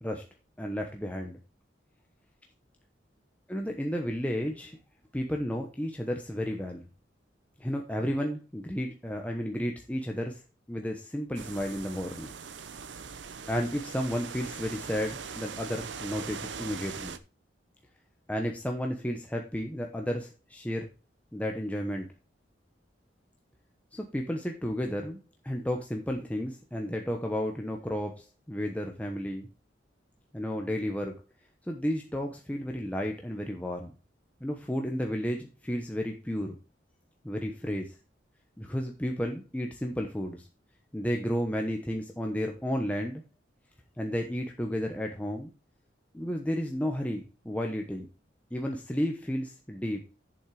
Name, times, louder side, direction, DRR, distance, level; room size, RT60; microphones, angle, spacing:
voice 1, 0.6-1.4 3.5-4.8 5.1-6.8 7.6-10.4 10.7-12.3 13.5-17.1 18.3-20.9 21.3-22.1 23.9-29.5 30.3-31.2 31.7-33.9 34.4-36.5 37.2-37.9 38.6-40.5 40.9-43.2 44.0-45.5 46.1-48.1 48.5-50.0, equal, 10° left, 2 dB, 1.0 m, -32 dB
sound 1, 11.3-17.2, right 6 dB, 90° right, 0.8 m, -41 dB
8.6 x 7.3 x 4.9 m, 0.30 s
head